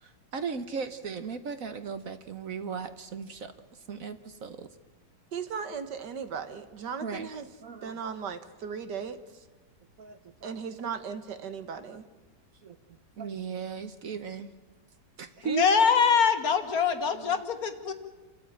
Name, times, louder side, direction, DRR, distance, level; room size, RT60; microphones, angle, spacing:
voice 1, 0.0-3.5 3.9-4.7 7.0-7.3 7.6-8.0 10.0-10.6 11.9-12.0 12.6-12.8 13.2-14.5 15.2-15.6 17.1-17.4, right 6 dB, 55° right, 10 dB, 1.3 m, -37 dB
voice 2, 5.3-7.5 7.8-9.2 10.4-12.1, right 6 dB, 70° right, 10 dB, 1.9 m, -37 dB
voice 3, 15.5-17.9, left 6 dB, 55° left, 8 dB, 1.9 m, -24 dB
28.0 x 14.0 x 9.0 m, 1.2 s
omnidirectional pair, 1.9 m